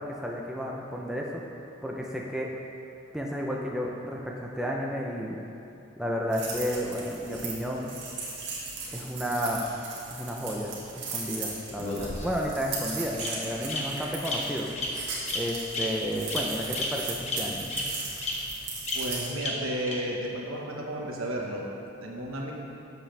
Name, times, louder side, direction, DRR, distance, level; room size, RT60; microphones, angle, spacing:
voice 1, 0.0-1.3 1.8-2.5 3.1-5.4 6.0-8.0 8.9-9.6 10.1-14.7 15.3-17.7, equal, 5° right, -2 dB, 0.6 m, -32 dB
sound 1, 6.3-19.3, right 4 dB, 55° right, 1.8 m, -38 dB
Bird vocalization bird call bird song, 11.8-12.5 13.2-13.3 13.7-13.8 14.2-14.3 14.7-14.9 15.3-15.4 15.7-15.8 16.3-16.4 16.7-16.8 17.3-17.4 17.7-17.8 18.2-18.3 18.9-19.0 19.4-19.5 19.9-20.0, left 3 dB, 30° left, 1.1 m, -31 dB
voice 2, 18.9-21.7 22.0-22.5, right 1 dB, 80° right, -1 dB, 1.3 m, -33 dB
12.0 x 7.5 x 3.4 m, 2.8 s
head